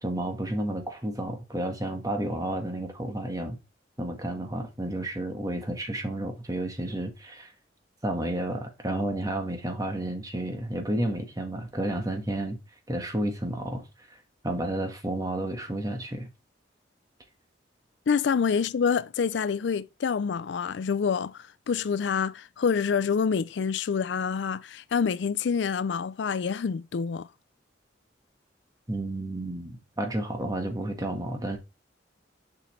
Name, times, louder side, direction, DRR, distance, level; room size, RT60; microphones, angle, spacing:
voice 1, 0.0-3.6 4.0-7.5 8.0-12.6 12.9-16.3 28.9-31.6, right 1 dB, 20° right, 1.6 m, -31 dB
voice 2, 18.1-27.3, left 6 dB, 70° left, 0.4 m, -27 dB
7.0 x 5.7 x 3.1 m
head